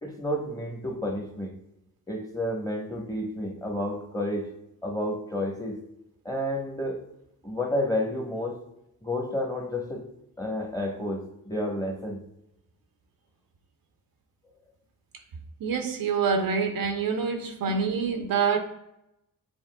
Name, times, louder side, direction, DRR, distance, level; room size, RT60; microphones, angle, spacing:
voice 1, 0.0-1.6 2.1-4.5 4.8-5.8 6.2-7.0 7.4-8.6 9.0-10.1 10.4-12.2 17.7-17.8, left 1 dB, 10° left, 1.0 m, -30 dB
voice 2, 15.6-18.6, right 5 dB, 80° right, 0.7 m, -26 dB
7.2 x 2.9 x 2.2 m
cardioid pair, 80°, 34 cm